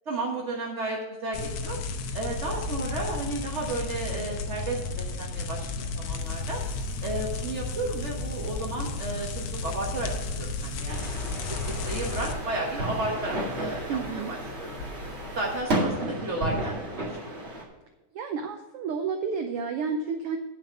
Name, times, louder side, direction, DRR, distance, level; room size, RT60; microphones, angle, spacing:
voice 1, 0.0-1.8 2.1-6.6 7.0-10.1 10.4-11.1 11.4-11.6 11.8-14.7 15.3-17.2, right 2 dB, 60° right, -2 dB, 0.7 m, -33 dB
sound 1, 1.3-12.3, left 3 dB, 70° left, 1.9 m, -33 dB
sound 2, 6.2-15.6, left 1 dB, 55° left, 2.7 m, -44 dB
sound 3, 10.9-17.6, right 1 dB, 25° right, 1.7 m, -33 dB
voice 2, 13.9-14.3 18.1-20.4, right 5 dB, 80° right, 5 dB, 1.3 m, -30 dB
9.6 x 5.9 x 6.5 m, 1.1 s
omnidirectional pair, 3.4 m